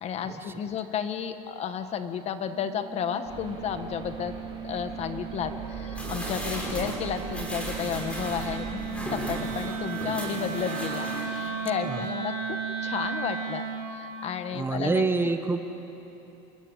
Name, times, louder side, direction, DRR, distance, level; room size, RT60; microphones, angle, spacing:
voice 1, 0.0-4.3 4.6-13.6 13.9-15.0, left 8 dB, 35° left, 9 dB, 1.3 m, -32 dB
Wind instrument woodwind instrument, 2.5-14.0, right 6 dB, 75° right, 4.7 m, -35 dB
sound 1, 3.2-9.7, right 5 dB, 25° right, 3.8 m, -41 dB
sound 2, 5.9-11.6 12.0-12.1, equal, 5° left, 5.7 m, -37 dB
voice 2, 14.5-15.6, right 3 dB, 10° right, 7 dB, 1.1 m, -26 dB
28.5 x 22.5 x 9.1 m, 3.0 s
cardioid pair, 155°, 19 cm